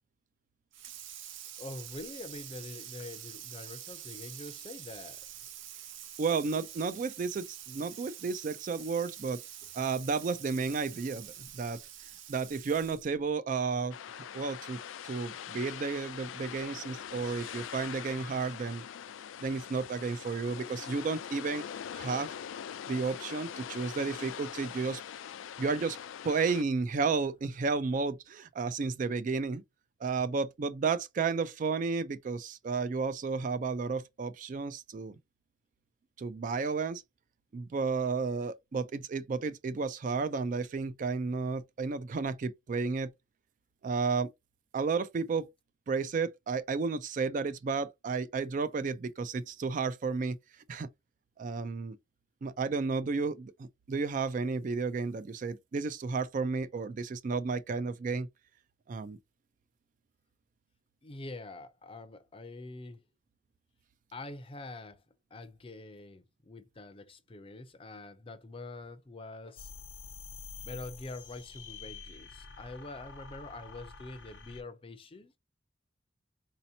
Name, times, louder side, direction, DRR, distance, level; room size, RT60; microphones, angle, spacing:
Water tap faucet / Sink (filling or washing), 0.7-13.2, right 11 dB, 80° right, 0.7 m, -46 dB
voice 1, 1.6-5.3 61.0-63.0 64.1-65.0 65.3-69.7 70.6-75.4, left 2 dB, 30° left, 0.5 m, -45 dB
voice 2, 6.2-9.4 9.7-11.8 12.3-13.9 14.3-18.8 19.4-21.7 21.9-22.3 22.9-25.0 25.6-26.0 26.2-29.6 30.0-35.2 36.2-37.0 37.5-43.1 43.8-44.3 44.7-45.5 45.9-50.4 50.7-50.9 51.4-52.0 52.4-58.3 58.9-59.2, right 4 dB, 45° right, 0.3 m, -32 dB
sound 1, 13.9-26.6, left 9 dB, 90° left, 0.3 m, -43 dB
sound 2, 69.6-74.6, left 5 dB, 70° left, 0.7 m, -48 dB
4.1 x 2.8 x 2.7 m
head